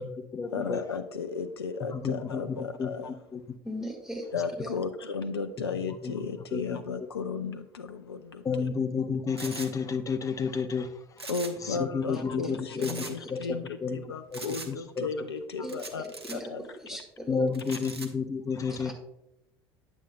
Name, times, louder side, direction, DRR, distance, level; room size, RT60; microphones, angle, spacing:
voice 1, 0.0-0.8 1.9-2.9 3.3-3.4 5.9-6.1 6.5-6.8 8.4-10.9 11.6-14.0 14.3-14.4 14.7-15.1 17.3-18.9, left 5 dB, 25° left, 9 dB, 0.6 m, -31 dB
voice 2, 0.5-3.1 4.3-8.7 11.3-16.0 16.3-16.8 17.7-17.8, left 5 dB, 80° left, 9 dB, 0.4 m, -34 dB
voice 3, 3.6-4.3 4.6-4.8 12.7-13.1 15.6-17.4 18.8-18.9, equal, 5° right, 0 dB, 1.7 m, -39 dB
sound 1, 9.4-9.7 11.2-11.7 11.9-12.0 12.8-13.1 14.3-14.7 15.7-16.4 17.5-18.1, right 3 dB, 85° right, 0.6 m, -40 dB
8.6 x 7.1 x 2.3 m, 0.84 s
figure-of-eight pair, 65°, 13 cm